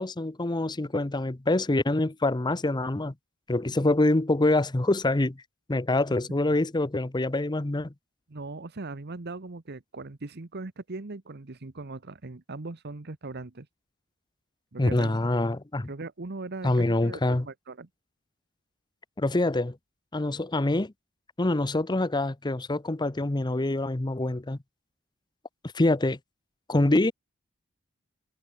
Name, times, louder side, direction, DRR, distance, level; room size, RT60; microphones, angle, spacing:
voice 1, 0.0-3.1 3.5-5.4 5.7-7.9 14.8-15.9 16.6-17.5 19.2-19.8 20.1-20.9 21.4-24.6 25.7-26.2 26.7-27.1, left 2 dB, 20° left, 0.8 m, -25 dB
voice 2, 8.3-13.7 14.7-15.2 15.9-17.9, right 3 dB, 55° right, 1.1 m, -39 dB
head